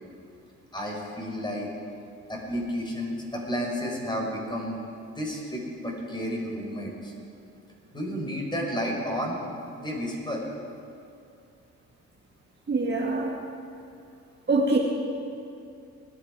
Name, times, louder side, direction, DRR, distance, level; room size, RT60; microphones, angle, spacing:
voice 1, 0.7-1.7 2.3-4.8 5.1-7.1 7.9-9.4 9.8-10.5, equal, 15° left, -1 dB, 4.3 m, -31 dB
voice 2, 12.7-13.3 14.5-14.8, right 3 dB, 35° right, -1 dB, 1.8 m, -23 dB
19.5 x 12.0 x 4.9 m, 2.5 s
cardioid pair, 90°, 30 cm